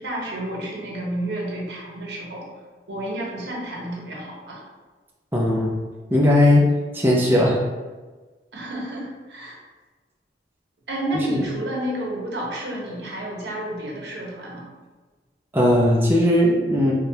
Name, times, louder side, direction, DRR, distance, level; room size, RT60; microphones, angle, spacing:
voice 1, 0.0-2.4 2.9-4.6 8.5-9.6 10.9-14.7, right 1 dB, 80° right, -3 dB, 0.9 m, -30 dB
voice 2, 5.3-5.7 6.1-6.6 6.9-7.6 15.5-16.9, left 1 dB, 10° right, -4 dB, 0.5 m, -17 dB
5.0 x 2.2 x 2.7 m, 1.3 s
head